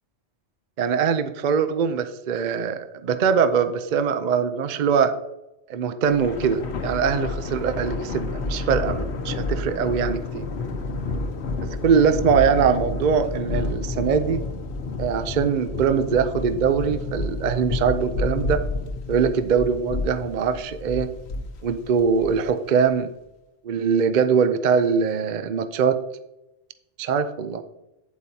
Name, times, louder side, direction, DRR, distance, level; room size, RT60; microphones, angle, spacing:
voice 1, 0.8-5.1 5.7-10.5 11.8-14.4 15.0-18.6 19.1-21.1 21.6-23.1 23.6-26.0 27.0-27.6, right 6 dB, 50° right, 10 dB, 0.6 m, -22 dB
Thunder, 6.0-22.6, left 3 dB, 65° left, 1.1 m, -30 dB
9.2 x 8.2 x 2.8 m, 0.92 s
omnidirectional pair, 1.2 m